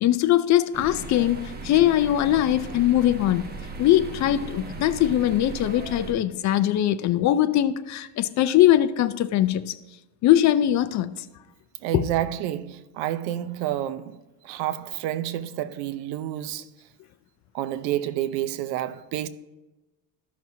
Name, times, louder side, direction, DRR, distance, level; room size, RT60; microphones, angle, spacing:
voice 1, 0.0-3.5 3.8-9.8 10.2-11.1 11.9-12.1, left 12 dB, 45° left, 0.4 m, -21 dB
sound 1, 0.7-6.1, right 3 dB, 20° right, 0.9 m, -37 dB
voice 2, 11.8-16.7 17.5-19.3, right 12 dB, 90° right, 0.7 m, -29 dB
14.0 x 5.9 x 2.7 m
cardioid pair, 140°, 43 cm